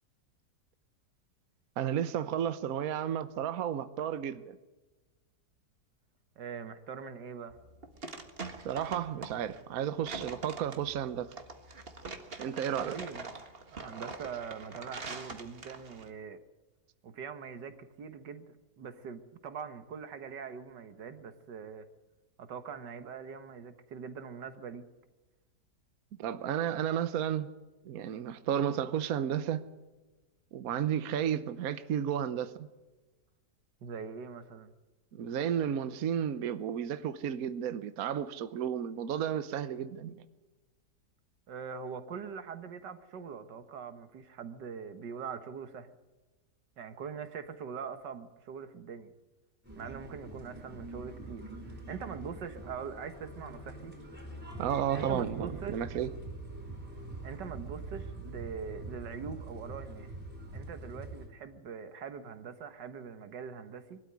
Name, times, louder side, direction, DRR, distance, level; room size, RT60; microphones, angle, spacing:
voice 1, 1.8-4.6 8.6-11.3 12.4-13.0 26.2-27.5 27.8-29.7 30.5-32.7 35.1-40.2 54.6-56.1, right 9 dB, 60° right, 1.2 m, -32 dB
voice 2, 6.4-7.6 12.8-13.3 13.7-16.4 17.0-21.9 22.4-24.8 33.8-34.7 41.5-45.9 46.8-49.1 49.8-53.9 54.9-55.8 57.2-60.1 60.5-64.0, right 6 dB, 90° right, 1.9 m, -42 dB
sound 1, 7.5-16.1, right 3 dB, 35° right, 1.8 m, -43 dB
sound 2, 49.6-61.3, right 2 dB, 5° right, 4.4 m, -44 dB
22.0 x 13.0 x 9.7 m
omnidirectional pair, 1.8 m